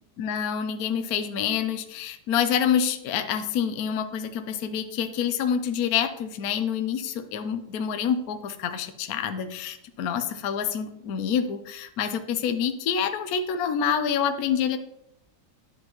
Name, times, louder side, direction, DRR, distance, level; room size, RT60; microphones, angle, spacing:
voice 1, 0.2-14.8, left 8 dB, 65° left, 8 dB, 1.0 m, -27 dB
10.5 x 7.7 x 3.0 m, 0.80 s
omnidirectional pair, 2.0 m